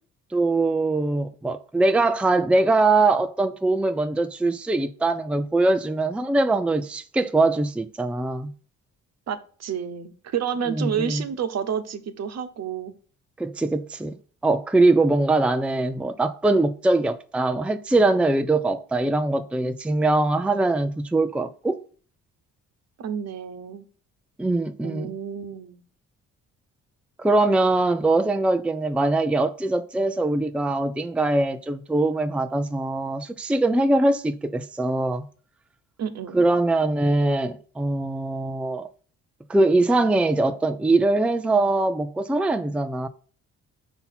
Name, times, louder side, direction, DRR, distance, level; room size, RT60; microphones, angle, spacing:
voice 1, 0.3-8.5 10.8-11.2 13.4-14.2 14.4-21.8 24.4-25.1 27.2-35.3 36.3-38.9 39.5-43.1, right 2 dB, 5° right, 0.5 m, -22 dB
voice 2, 9.3-12.9 23.0-23.8 24.8-25.8 36.0-36.6, right 8 dB, 60° right, 1.1 m, -30 dB
5.7 x 4.1 x 5.7 m
cardioid pair, 90°, 30 cm